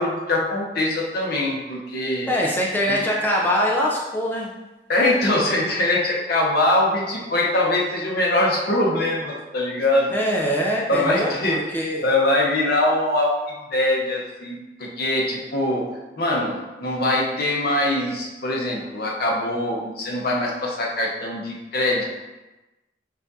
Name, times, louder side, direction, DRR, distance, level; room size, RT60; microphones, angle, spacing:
voice 1, 0.0-2.3 2.9-3.0 4.9-10.1 10.9-11.6 12.0-13.3 13.7-15.8 16.2-22.1, left 1 dB, 60° left, -3 dB, 0.8 m, -22 dB
voice 2, 2.3-4.6 10.1-12.0, equal, 10° left, -3 dB, 0.4 m, -23 dB
5.7 x 2.5 x 2.7 m, 1.1 s
head